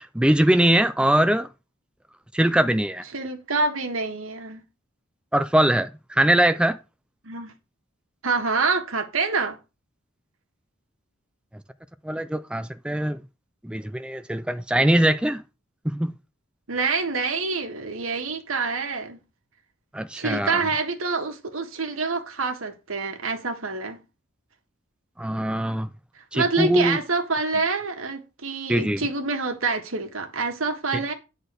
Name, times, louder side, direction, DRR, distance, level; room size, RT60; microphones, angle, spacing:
voice 1, 0.0-1.5 2.3-3.0 5.3-6.8 12.0-13.2 13.6-15.4 15.8-16.1 19.9-20.6 25.2-25.9 26.3-27.0 28.7-29.0, right 1 dB, 5° right, 0.4 m, -22 dB
voice 2, 3.1-4.6 7.2-7.5 8.2-9.6 16.7-19.2 20.1-24.0 26.3-31.1, right 4 dB, 85° right, 1.6 m, -26 dB
9.7 x 4.1 x 6.7 m
head